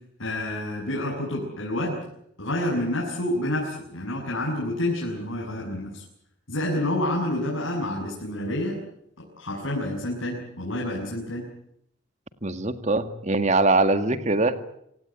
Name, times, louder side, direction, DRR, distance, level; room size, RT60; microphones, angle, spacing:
voice 1, 0.2-2.0 2.4-6.0 6.5-8.8 9.2-11.4, left 1 dB, 85° left, -2 dB, 7.5 m, -28 dB
voice 2, 12.4-14.5, right 2 dB, 35° right, 10 dB, 1.9 m, -22 dB
27.0 x 18.0 x 9.2 m, 0.74 s
head